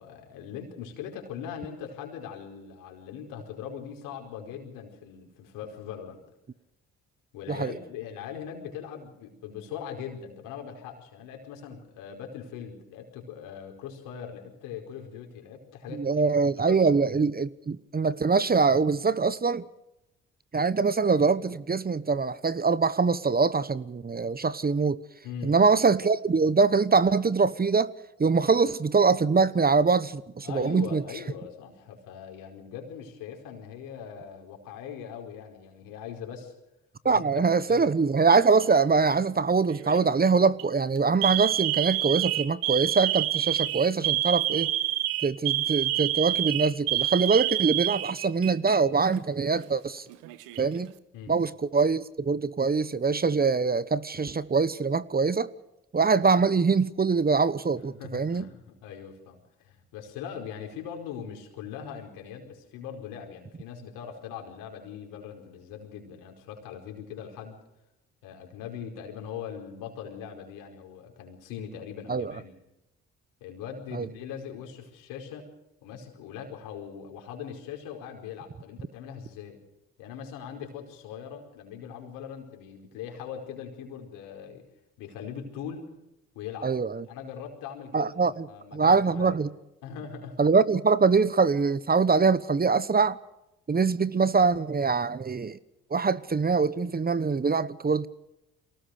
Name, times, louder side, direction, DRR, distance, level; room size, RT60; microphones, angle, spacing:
voice 1, 0.0-6.2 7.3-16.1 16.6-16.8 25.2-25.5 30.4-36.5 37.0-37.3 37.7-37.9 51.1-51.4 57.7-67.6 68.2-72.5 73.4-75.5 75.8-79.6 80.0-84.6 85.0-85.9 86.3-86.7 87.1-88.1 88.5-89.4 89.8-90.4, left 8 dB, 85° left, 4.8 m, -41 dB
voice 2, 15.9-19.7 20.5-25.0 25.4-27.9 28.2-31.0 37.0-44.7 45.2-50.0 50.6-50.9 51.3-55.5 55.9-58.5 72.1-72.3 73.9-74.1 86.6-87.0 87.9-88.5 88.7-89.5 90.4-93.2 93.7-95.6 95.9-98.1, right 4 dB, 30° right, 1.1 m, -23 dB
Alarm, 38.3-38.8 39.7-40.0 40.4-40.6 41.2-48.8 49.1-49.2 50.1-50.8, right 15 dB, 85° right, 1.2 m, -28 dB
23.0 x 18.5 x 6.5 m
supercardioid pair, 55°, 32 cm